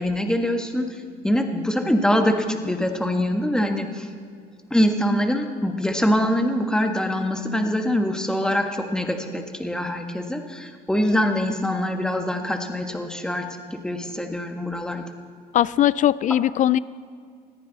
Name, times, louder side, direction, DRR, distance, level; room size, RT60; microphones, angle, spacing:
voice 1, 0.0-4.1 4.7-15.1, left 1 dB, 5° left, 4 dB, 1.5 m, -24 dB
voice 2, 15.5-16.8, left 12 dB, 50° left, 20 dB, 0.4 m, -19 dB
20.5 x 14.0 x 4.1 m, 2.2 s
cardioid pair, 110°, 17 cm